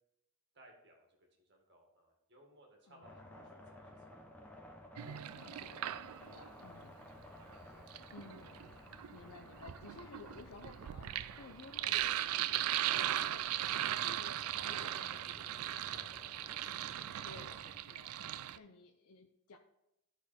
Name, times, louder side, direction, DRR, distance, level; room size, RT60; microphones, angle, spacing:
voice 1, 0.5-1.1 1.4-4.5 6.1-6.4 6.8-7.0 7.4-8.1 8.8-8.9 14.6-16.3 16.6-16.8, right 1 dB, 50° right, 0 dB, 1.8 m, -61 dB
voice 2, 2.9-3.5 5.4-7.0 8.1-8.6 8.9-16.1 17.2-19.6, left 4 dB, 85° left, 4 dB, 0.6 m, -56 dB
sound 1, 3.0-17.8, left 1 dB, 10° left, 0.7 m, -56 dB
Sink (filling or washing), 5.0-6.5 7.6-18.6, right 12 dB, 80° right, 0.3 m, -38 dB
11.5 x 4.1 x 4.4 m, 0.85 s
head